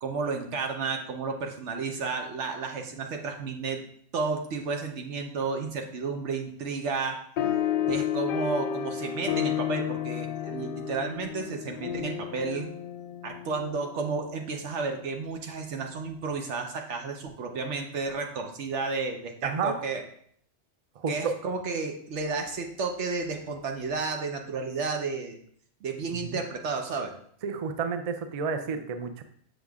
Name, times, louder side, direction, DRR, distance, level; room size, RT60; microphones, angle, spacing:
voice 1, 0.0-3.8 4.1-7.2 7.8-12.7 13.2-20.0 21.1-25.4 25.8-27.1, right 4 dB, 85° right, 3 dB, 1.2 m, -32 dB
sound 1, 7.4-14.2, left 10 dB, 60° left, 0.7 m, -31 dB
voice 2, 19.4-19.8 21.0-21.3 26.1-26.4 27.4-29.2, right 5 dB, 50° right, 8 dB, 0.5 m, -31 dB
6.9 x 6.1 x 2.3 m, 0.62 s
omnidirectional pair, 1.2 m